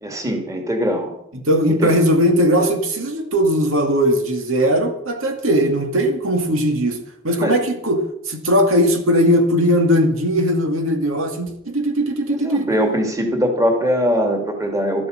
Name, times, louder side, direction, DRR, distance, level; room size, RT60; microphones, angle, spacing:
voice 1, 0.0-1.1 1.7-1.9 5.5-5.7 7.4-7.6 12.3-15.1, equal, 15° right, 3 dB, 2.3 m, -21 dB
voice 2, 1.3-7.0 7.2-12.7, equal, 85° right, 4 dB, 2.4 m, -18 dB
12.5 x 12.0 x 6.6 m, 0.76 s
head